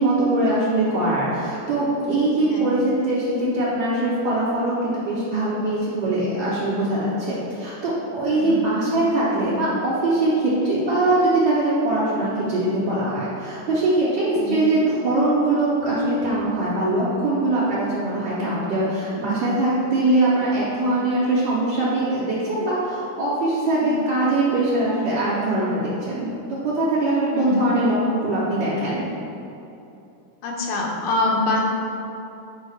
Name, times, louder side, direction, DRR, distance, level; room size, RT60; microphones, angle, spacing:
voice 1, 0.0-26.3 26.6-29.0, right 2 dB, 40° right, -13 dB, 2.2 m, -22 dB
voice 2, 8.3-8.7 14.4-14.6 23.7-24.0 27.3-27.7 30.4-31.6, left 2 dB, 80° left, -1 dB, 2.9 m, -25 dB
9.6 x 4.4 x 6.2 m, 2.8 s
omnidirectional pair, 4.4 m